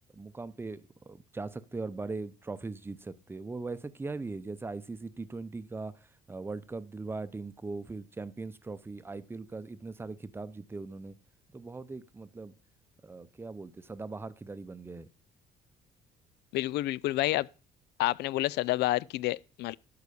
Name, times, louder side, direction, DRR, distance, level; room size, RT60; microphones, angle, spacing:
voice 1, 0.1-5.9 6.3-11.1 11.5-12.5 13.0-15.1, right 3 dB, 15° right, 0.7 m, -40 dB
voice 2, 16.5-17.5 18.0-19.8, left 17 dB, 75° left, 0.4 m, -29 dB
11.5 x 4.8 x 6.9 m
cardioid pair, 110°, 17 cm